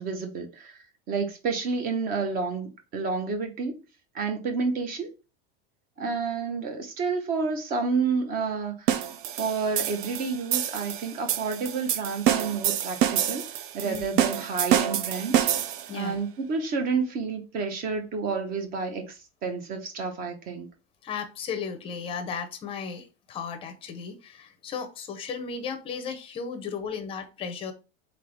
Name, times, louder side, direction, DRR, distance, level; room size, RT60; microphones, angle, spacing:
voice 1, 0.0-3.8 4.1-5.1 6.0-9.0 9.3-13.4 13.7-15.5 15.9-20.7, right 4 dB, 30° right, 0.9 m, -30 dB
sound 1, 8.9-16.0, right 10 dB, 55° right, 0.6 m, -27 dB
voice 2, 21.0-27.7, left 6 dB, 20° left, 0.7 m, -35 dB
3.9 x 3.7 x 3.3 m
supercardioid pair, 160°, 30 cm